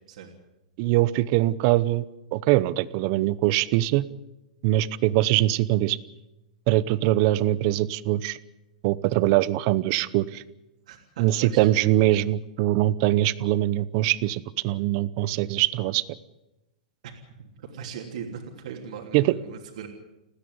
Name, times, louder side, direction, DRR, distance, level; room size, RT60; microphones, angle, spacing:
voice 1, 0.8-2.0 2.3-4.0 4.6-6.0 6.7-8.4 8.8-10.4 11.2-16.0 19.1-19.3, right 15 dB, 40° right, 18 dB, 0.8 m, -22 dB
voice 2, 10.9-11.7 17.0-17.1 17.4-19.9, right 7 dB, 60° right, 1 dB, 3.2 m, -39 dB
30.0 x 10.0 x 9.6 m, 0.97 s
supercardioid pair, 165°, 4 cm